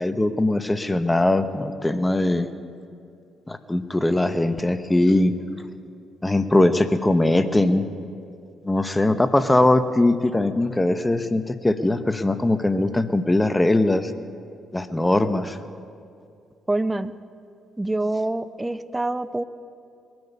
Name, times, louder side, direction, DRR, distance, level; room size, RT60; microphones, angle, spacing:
voice 1, 0.0-2.5 3.5-5.3 6.2-7.9 8.6-14.1 14.7-15.6, left 2 dB, 15° left, 11 dB, 1.0 m, -21 dB
voice 2, 16.7-17.1 17.8-19.4, right 2 dB, 15° right, 14 dB, 0.7 m, -25 dB
21.5 x 12.5 x 5.4 m, 2.5 s
supercardioid pair, 55°, 0 cm